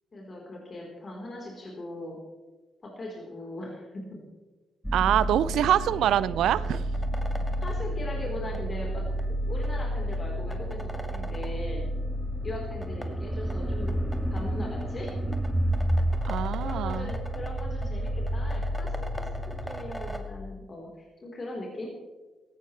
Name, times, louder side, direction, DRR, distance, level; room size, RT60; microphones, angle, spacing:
voice 1, 0.1-2.2 2.8-4.2 7.6-9.0 9.5-11.8 12.4-14.0 14.3-15.2 16.6-21.9, left 1 dB, 40° left, -2 dB, 4.1 m, -39 dB
sound 1, 4.8-20.2, equal, 5° left, 2.0 m, -30 dB
voice 2, 4.9-6.9 16.2-17.1, right 11 dB, 65° right, 18 dB, 0.5 m, -25 dB
18.0 x 15.5 x 3.3 m, 1.2 s
hypercardioid pair, 40°, 0 cm